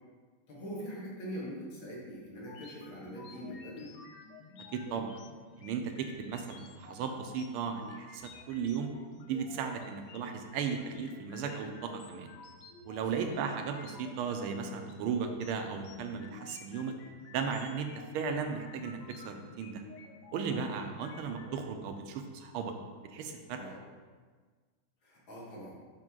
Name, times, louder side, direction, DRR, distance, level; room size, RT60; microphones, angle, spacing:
voice 1, 0.5-3.9 13.0-13.3 23.6-23.8 25.0-25.7, equal, 65° left, -6 dB, 2.4 m, -43 dB
sound 1, 2.4-21.6, left 4 dB, 80° left, 0.8 m, -52 dB
voice 2, 4.7-5.2 5.6-8.9 9.3-12.3 12.8-16.9 17.3-19.8 20.3-22.7 23.0-23.6, right 6 dB, 85° right, 5 dB, 1.5 m, -36 dB
6.1 x 5.2 x 3.7 m, 1.5 s
omnidirectional pair, 2.4 m